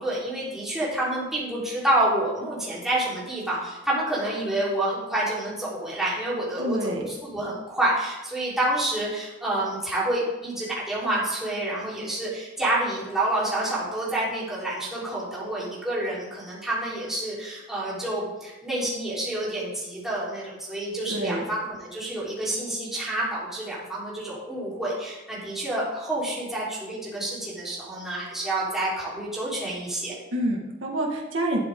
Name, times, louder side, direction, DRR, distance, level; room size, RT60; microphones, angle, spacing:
voice 1, 0.0-30.2, right 1 dB, ahead, -8 dB, 3.9 m, -28 dB
voice 2, 6.6-7.0 21.1-21.4 30.3-31.6, right 1 dB, 85° right, -1 dB, 1.7 m, -27 dB
12.0 x 8.5 x 3.7 m, 1.0 s
head